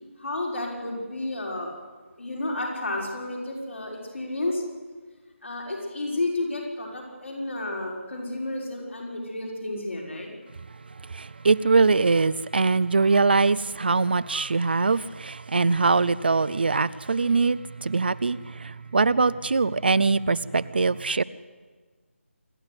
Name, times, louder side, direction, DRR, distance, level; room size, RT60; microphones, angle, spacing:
voice 1, 0.2-1.7 2.2-4.6 5.4-10.4, left 2 dB, 60° left, 5.8 m, -31 dB
voice 2, 11.1-21.2, right 4 dB, 45° right, 0.6 m, -22 dB
26.5 x 11.5 x 9.6 m
figure-of-eight pair, 160°, 7 cm